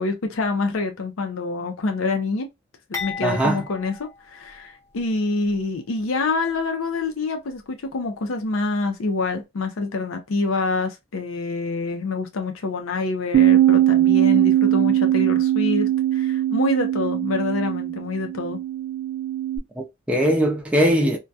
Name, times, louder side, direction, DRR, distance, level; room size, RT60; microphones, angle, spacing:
voice 1, 0.0-2.5 2.9-4.0 4.3-18.6, left 3 dB, 75° left, 0.5 m, -26 dB
sound 1, 2.9-5.1 5.5-5.6 6.5-6.6, left 5 dB, 15° left, 0.8 m, -36 dB
voice 2, 3.2-3.6 19.8-21.2, equal, 5° right, 0.4 m, -20 dB
Bass guitar, 13.3-19.6, right 12 dB, 90° right, 0.6 m, -20 dB
2.2 x 2.2 x 2.6 m
head